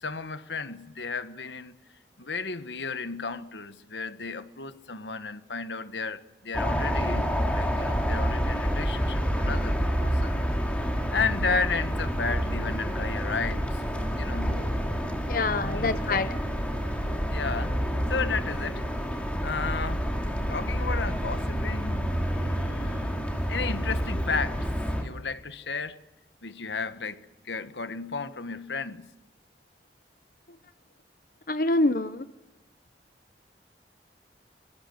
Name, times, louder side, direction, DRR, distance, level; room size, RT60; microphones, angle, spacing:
voice 1, 0.0-1.8 2.2-10.4 11.1-13.8 14.2-14.6 15.5-16.5 17.3-17.8 18.1-18.9 19.4-20.0 20.5-23.2 23.5-24.7 25.0-26.0 26.4-29.1, left 4 dB, 85° left, 1.4 m, -33 dB
sound 1, 6.5-25.0, equal, 5° left, 3.9 m, -28 dB
voice 2, 15.3-16.3 31.5-32.2, left 2 dB, 50° left, 0.8 m, -25 dB
25.5 x 21.5 x 7.9 m
head